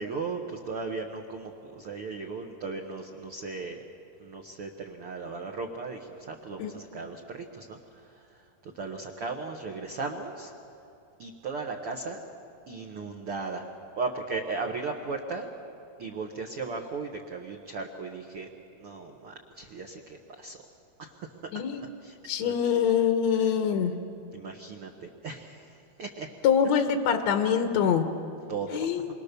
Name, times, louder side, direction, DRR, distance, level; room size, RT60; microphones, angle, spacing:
voice 1, 0.0-3.8 4.2-7.8 8.7-10.5 11.2-12.2 12.7-13.7 13.9-15.5 16.0-18.5 18.8-20.6 21.0-21.3 22.0-22.5 23.4-23.5 24.3-25.7 26.0-26.3 28.5-28.9, right 4 dB, 80° right, 1 dB, 1.2 m, -36 dB
voice 2, 22.3-24.0 26.4-28.1 28.7-29.1, left 7 dB, 70° left, 6 dB, 1.7 m, -24 dB
28.0 x 23.5 x 6.8 m, 2.6 s
omnidirectional pair, 4.6 m